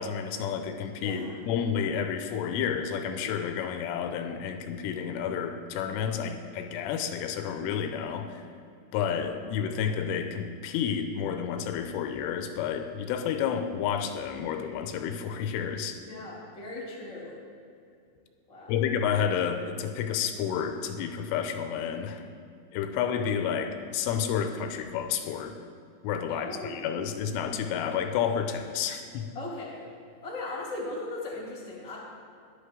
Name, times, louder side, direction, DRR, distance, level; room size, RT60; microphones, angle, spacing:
voice 1, 0.0-8.4 8.9-16.0 18.7-22.2 22.7-25.6 26.0-29.3, left 7 dB, 85° left, 7 dB, 3.1 m, -30 dB
voice 2, 1.0-1.3 16.1-17.4 18.5-18.8 26.3-27.0 29.3-29.9 30.2-32.0, left 2 dB, 25° left, -4 dB, 0.7 m, -38 dB
11.5 x 10.5 x 3.7 m, 2.4 s
omnidirectional pair, 5.7 m